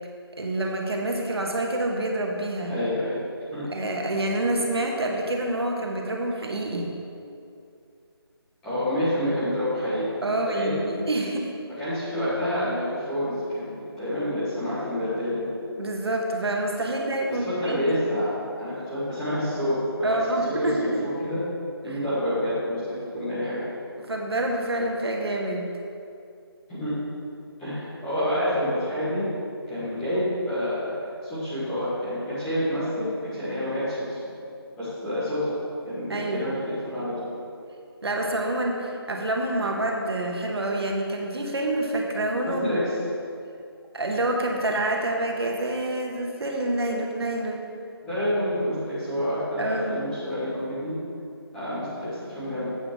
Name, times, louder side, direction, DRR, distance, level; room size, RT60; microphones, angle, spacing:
voice 1, 0.4-2.8 3.7-6.9 10.2-11.5 15.8-18.2 20.0-21.1 21.9-22.0 24.1-25.7 36.1-36.5 38.0-42.8 43.9-47.6 49.6-50.0, right 1 dB, 75° right, 1 dB, 1.3 m, -27 dB
voice 2, 2.6-3.2 3.5-3.6 8.6-10.8 11.8-15.5 17.4-18.3 18.6-21.4 21.8-23.8 26.7-26.9 27.6-29.2 29.7-30.9 31.2-34.3 34.8-35.5 35.8-37.3 42.4-42.9 48.0-50.9 51.5-52.7, equal, 5° left, -14 dB, 1.4 m, -28 dB
8.1 x 8.0 x 3.6 m, 2.5 s
figure-of-eight pair, 175°, 13 cm